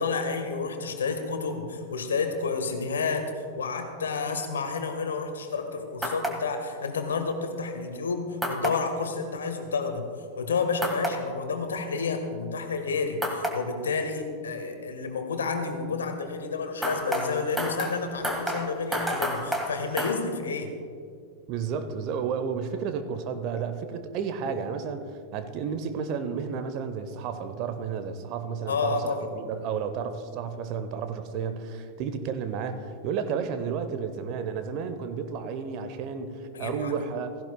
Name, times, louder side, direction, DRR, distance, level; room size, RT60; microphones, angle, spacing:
voice 1, 0.0-10.1 10.4-20.7 28.7-29.3 36.5-37.1, left 4 dB, 70° left, 6 dB, 1.3 m, -30 dB
sound 1, 6.0-6.3 8.4-8.7 10.8-11.1 13.2-13.5 16.8-20.1, right 1 dB, 5° right, 1.6 m, -29 dB
voice 2, 21.5-37.4, right 6 dB, 40° right, 9 dB, 0.9 m, -32 dB
16.0 x 15.5 x 2.2 m, 2.3 s
figure-of-eight pair, 90°, 0 cm